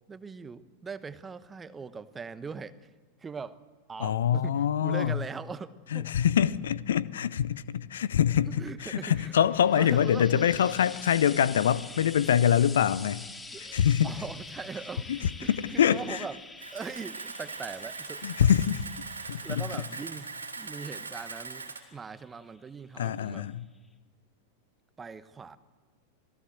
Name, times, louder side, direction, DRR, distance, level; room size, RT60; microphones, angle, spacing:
voice 1, 0.1-2.9 3.2-3.6 3.9-6.1 8.5-9.3 9.7-10.5 11.2-11.3 12.6-12.8 13.5-16.4 16.7-18.3 19.4-23.5 25.0-25.6, right 5 dB, 15° right, 1.1 m, -41 dB
voice 2, 4.0-5.2 5.9-13.3 13.7-14.1 15.1-16.2 18.2-18.8 19.3-19.8 23.0-23.6, left 9 dB, 65° left, 0.7 m, -25 dB
Frying (food), 9.1-22.6 23.5-23.6, left 3 dB, 10° left, 2.3 m, -47 dB
Camera, 16.6-21.8, right 4 dB, 75° right, 3.2 m, -40 dB
27.0 x 18.0 x 8.0 m
figure-of-eight pair, 90°, 0 cm